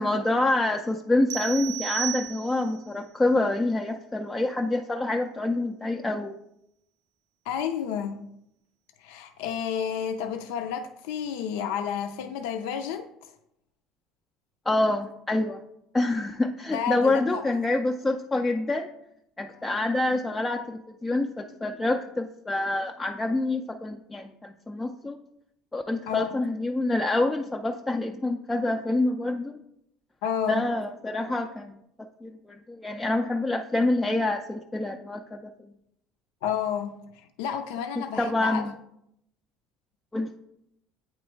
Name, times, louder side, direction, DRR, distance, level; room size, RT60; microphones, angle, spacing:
voice 1, 0.0-6.4 14.7-15.6 15.9-18.9 19.4-25.2 25.7-29.6 30.5-31.7 32.2-35.5 38.0-38.7 40.1-40.3, left 2 dB, 10° left, 2 dB, 0.3 m, -27 dB
sound 1, 1.3-2.8, right 18 dB, 85° right, 0.4 m, -33 dB
voice 2, 7.5-8.2 9.0-13.3 16.7-17.4 26.1-26.4 30.2-30.7 36.4-36.9 37.4-38.7, left 8 dB, 90° left, 6 dB, 0.4 m, -30 dB
8.6 x 3.1 x 4.4 m, 0.79 s
cardioid pair, 135°, 0 cm